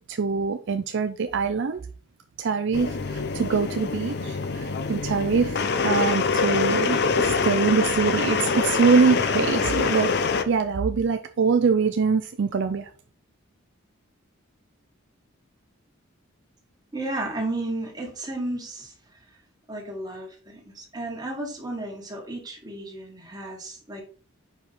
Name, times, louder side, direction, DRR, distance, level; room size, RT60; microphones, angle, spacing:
voice 1, 0.1-1.8 2.4-12.9, right 5 dB, 55° right, 8 dB, 0.4 m, -24 dB
sound 1, 2.7-10.4, left 5 dB, 55° left, 0.6 m, -25 dB
voice 2, 16.9-18.9 19.7-24.0, right 2 dB, 20° right, 0 dB, 1.7 m, -33 dB
5.4 x 4.9 x 4.2 m, 0.41 s
head